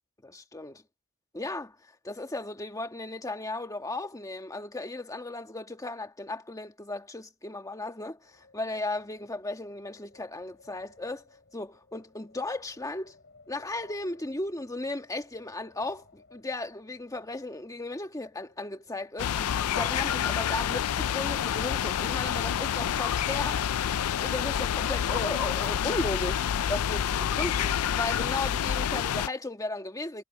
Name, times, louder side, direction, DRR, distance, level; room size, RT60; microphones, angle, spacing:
voice 1, 0.2-0.8 1.3-13.2 13.5-23.6 24.1-30.2, left 2 dB, 15° left, 1.5 m, -36 dB
Wind, 8.1-20.7, left 3 dB, 50° left, 7.2 m, -60 dB
sound 1, 19.2-29.3, left 9 dB, 85° left, 0.4 m, -28 dB
head